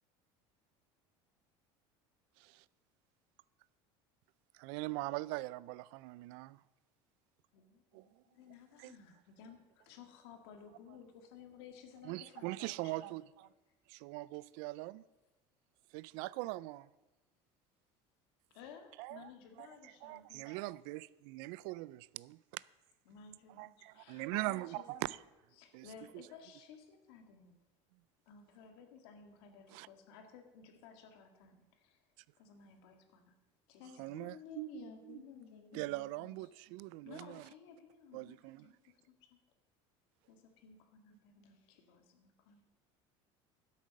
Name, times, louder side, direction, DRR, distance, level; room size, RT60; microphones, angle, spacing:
voice 1, 4.5-6.6 7.9-8.1 8.8-9.0 12.0-13.5 13.9-15.0 15.9-16.9 19.0-19.3 19.6-22.6 23.6-25.2 25.7-25.9 26.1-26.3 29.7-29.9 34.0-35.2 35.7-37.4 38.1-38.7, right 20 dB, 65° right, 0.4 m, -42 dB
voice 2, 7.5-13.1 18.5-20.6 23.1-25.1 25.6-27.6 28.3-32.0 32.4-33.4 33.7-34.4 37.0-38.4 38.6-39.4 40.3-42.6, left 6 dB, 85° left, 2.0 m, -57 dB
voice 3, 33.7-36.3 41.4-41.7, left 8 dB, 65° left, 2.4 m, -53 dB
11.5 x 8.5 x 6.5 m
cardioid pair, 160°, 13 cm